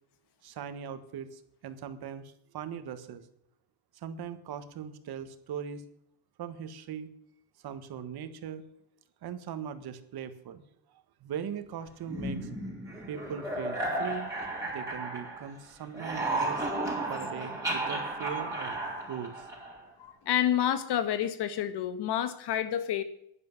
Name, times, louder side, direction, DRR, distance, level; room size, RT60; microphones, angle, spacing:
voice 1, 0.4-3.2 4.0-5.8 6.4-7.1 7.6-8.7 9.2-10.6 11.2-12.5 13.1-14.3 14.6-16.6 17.1-19.5, right 8 dB, 65° right, 10 dB, 1.6 m, -40 dB
sound 1, 12.1-15.6 15.8-19.9, right 2 dB, 5° right, 4.9 m, -34 dB
voice 2, 20.0-23.0, left 10 dB, 75° left, 11 dB, 1.7 m, -29 dB
11.0 x 10.5 x 7.2 m, 0.76 s
cardioid pair, 150°, 41 cm